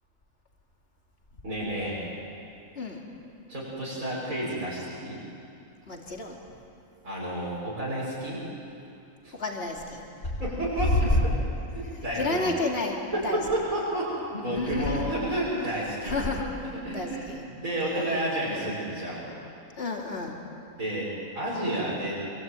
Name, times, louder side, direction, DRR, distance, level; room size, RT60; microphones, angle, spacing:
voice 1, 1.4-2.0 3.5-5.2 7.0-8.4 9.2-9.3 10.4-11.2 11.7-12.4 13.1-16.2 16.7-17.3 17.6-19.3 20.8-21.1 21.4-22.1, right 1 dB, 65° right, -9 dB, 6.9 m, -30 dB
voice 2, 5.9-6.4 9.3-10.4 10.9-11.2 12.2-13.4 14.4-15.1 16.0-16.5 16.9-17.4 18.5-18.8 19.8-20.4, left 2 dB, 45° left, 0 dB, 3.0 m, -29 dB
26.0 x 23.0 x 9.2 m, 2.7 s
omnidirectional pair, 1.5 m